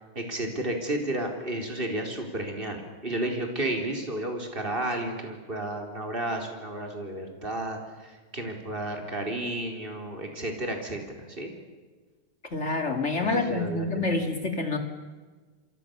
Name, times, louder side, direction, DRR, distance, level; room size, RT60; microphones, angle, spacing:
voice 1, 0.1-11.5 13.2-14.1, right 1 dB, 15° right, 3 dB, 4.3 m, -32 dB
voice 2, 12.5-14.8, left 3 dB, 20° left, 6 dB, 2.8 m, -27 dB
28.0 x 23.5 x 7.1 m, 1.3 s
omnidirectional pair, 3.6 m